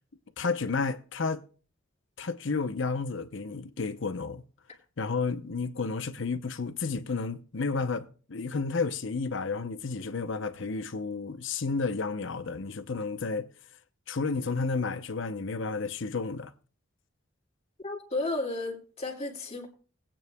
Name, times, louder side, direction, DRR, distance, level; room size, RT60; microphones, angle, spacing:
voice 1, 0.4-1.4 2.2-4.4 5.0-13.5 14.1-16.5, left 4 dB, 65° left, 0.8 m, -31 dB
voice 2, 17.8-19.7, left 2 dB, 30° left, 2.4 m, -33 dB
19.5 x 8.9 x 2.3 m
head